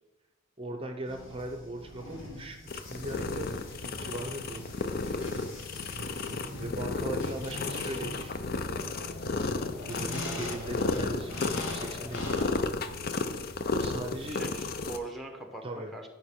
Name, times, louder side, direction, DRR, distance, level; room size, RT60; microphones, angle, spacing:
voice 1, 0.6-3.5 3.8-5.5 6.6-8.4 9.4-9.6 9.8-12.4 13.8-14.4 15.6-15.9, right 1 dB, 30° right, 4 dB, 0.7 m, -39 dB
sound 1, 1.0-15.1, left 1 dB, 75° left, 2.2 m, -43 dB
sound 2, 2.7-15.0, left 3 dB, 50° left, 0.5 m, -33 dB
voice 2, 14.3-16.1, right 2 dB, ahead, 3 dB, 0.9 m, -42 dB
13.0 x 5.2 x 3.6 m, 1.2 s
head